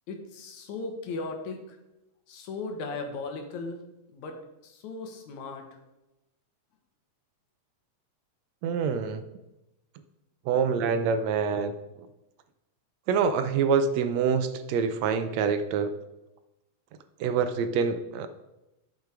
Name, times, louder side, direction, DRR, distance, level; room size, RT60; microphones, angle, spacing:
voice 1, 0.1-1.8 2.3-3.8 4.1-5.7, left 3 dB, 80° left, 4 dB, 2.7 m, -37 dB
voice 2, 8.6-9.2 10.5-11.7 13.1-15.9 17.2-18.3, right 6 dB, 75° right, 10 dB, 1.8 m, -26 dB
11.0 x 6.7 x 4.8 m, 0.96 s
omnidirectional pair, 3.3 m